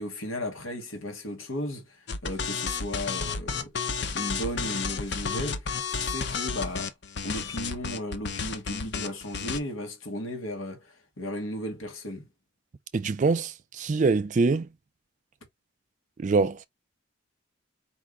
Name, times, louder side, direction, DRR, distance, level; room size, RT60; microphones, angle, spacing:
voice 1, 0.0-3.8 4.1-6.9 7.2-12.3, left 1 dB, 80° left, 1.4 m, -35 dB
sound 1, 2.1-9.6, left 5 dB, 55° left, 0.6 m, -32 dB
voice 2, 12.9-14.7 16.2-16.7, right 4 dB, 35° right, 0.3 m, -24 dB
4.5 x 2.4 x 3.6 m
head